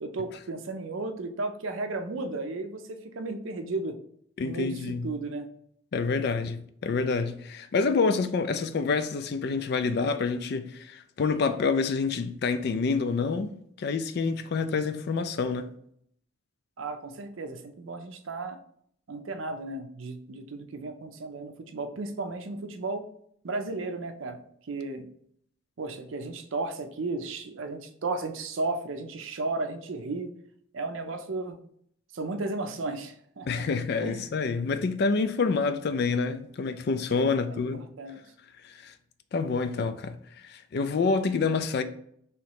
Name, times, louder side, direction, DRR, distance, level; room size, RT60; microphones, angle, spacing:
voice 1, 0.0-4.0 4.4-5.5 16.8-18.6 19.1-23.0 23.4-25.1 25.8-30.3 30.7-31.6 32.1-33.7 34.0-34.3 37.1-38.2, right 3 dB, 65° right, 0.5 m, -34 dB
voice 2, 4.4-5.1 5.9-13.5 13.8-15.7 33.5-37.8 38.6-38.9 39.3-41.8, left 4 dB, 50° left, 0.3 m, -27 dB
3.1 x 3.0 x 4.7 m
head